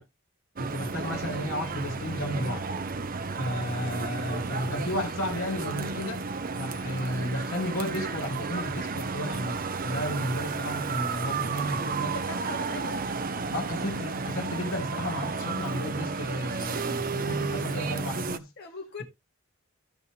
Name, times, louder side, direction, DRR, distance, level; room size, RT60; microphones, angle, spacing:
voice 1, 0.6-2.6 3.4-6.2 6.5-12.1 13.5-18.5, equal, 75° left, 2.3 m, -33 dB
sound 1, 0.6-18.4, right 4 dB, 40° right, 0.7 m, -32 dB
voice 2, 12.1-13.3 18.6-19.0, left 3 dB, 50° left, 2.2 m, -41 dB
14.5 x 5.6 x 3.3 m
head